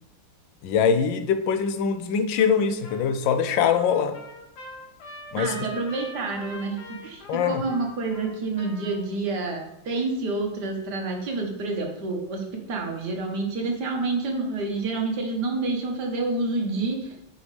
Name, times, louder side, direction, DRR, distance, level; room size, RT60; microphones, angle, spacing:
voice 1, 0.6-4.2 5.3-5.5 7.3-7.6, left 6 dB, 90° left, 8 dB, 1.4 m, -23 dB
Trumpet, 2.4-2.6 2.8-9.1, left 1 dB, 60° left, 1.7 m, -43 dB
voice 2, 5.4-17.3, right 3 dB, 65° right, 1 dB, 1.7 m, -28 dB
7.8 x 5.3 x 3.3 m, 0.83 s
omnidirectional pair, 2.0 m